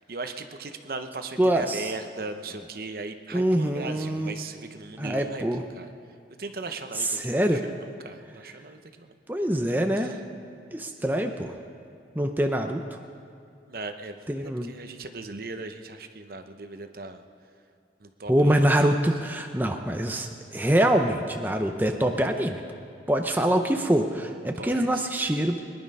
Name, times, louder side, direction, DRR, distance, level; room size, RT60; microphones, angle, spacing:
voice 1, 0.1-5.9 6.4-9.1 10.0-10.2 13.7-17.2 18.0-18.6 24.6-25.1, right 3 dB, 55° right, 8 dB, 0.8 m, -38 dB
voice 2, 1.4-1.9 3.3-4.3 5.0-5.6 7.0-7.6 9.3-10.1 10.7-11.6 12.2-12.8 14.3-14.7 18.3-22.6 23.1-25.6, right 1 dB, 10° right, 4 dB, 0.6 m, -24 dB
21.5 x 11.0 x 5.4 m, 2.4 s
head